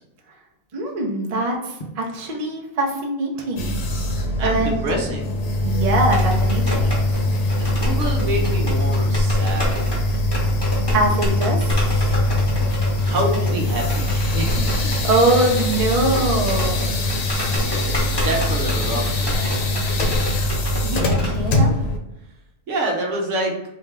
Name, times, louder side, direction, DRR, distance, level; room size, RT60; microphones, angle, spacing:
voice 1, 0.7-3.8 4.4-4.8 5.6-6.9 10.9-11.8 14.6-14.8 15.0-16.9 17.4-17.6 20.8-21.7, right 2 dB, 40° right, -1 dB, 0.6 m, -23 dB
sound 1, 1.8-2.1 3.0-4.2 5.9-6.1, right 1 dB, 45° left, 0.9 m, -40 dB
sound 2, 3.6-22.0, left 1 dB, 85° left, 1.1 m, -22 dB
voice 2, 4.4-5.4 7.6-9.8 13.0-14.9 17.7-19.9 22.7-23.5, right 1 dB, 70° right, 0 dB, 1.1 m, -27 dB
sound 3, 6.1-21.4, left 1 dB, 20° left, 1.3 m, -29 dB
3.4 x 2.8 x 3.3 m, 0.92 s
omnidirectional pair, 1.4 m